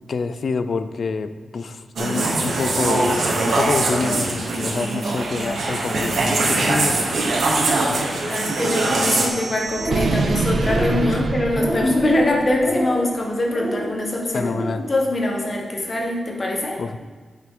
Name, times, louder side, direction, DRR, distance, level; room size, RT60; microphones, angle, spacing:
voice 1, 0.1-3.1 3.5-7.5 7.9-8.4 11.0-11.2 14.3-14.8 16.8-17.0, left 4 dB, 55° left, 11 dB, 0.4 m, -27 dB
sound 1, 2.0-9.3, right 2 dB, 75° right, 1.2 m, -22 dB
voice 2, 8.3-14.5 14.9-16.8, left 1 dB, 35° left, 0 dB, 1.3 m, -23 dB
sound 2, 8.3-12.7, right 3 dB, 55° right, 0.6 m, -26 dB
sound 3, 9.7-10.3 10.5-11.1 11.5-12.1 12.5-13.0 13.4-13.9 14.3-14.8, right 1 dB, 25° right, 1.7 m, -28 dB
9.0 x 5.8 x 3.8 m, 1.5 s
wide cardioid pair, 145°, 0 cm